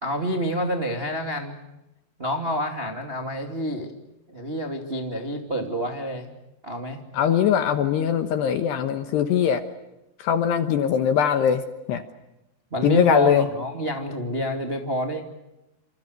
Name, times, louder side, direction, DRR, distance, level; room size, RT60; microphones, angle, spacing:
voice 1, 0.0-1.6 2.2-3.9 4.3-6.3 6.6-7.0 12.7-15.2, equal, 30° right, 3 dB, 1.0 m, -28 dB
voice 2, 7.1-9.6 10.2-12.0 12.8-13.5, left 8 dB, 70° left, 9 dB, 2.8 m, -21 dB
29.5 x 27.0 x 6.6 m, 0.95 s
omnidirectional pair, 6.0 m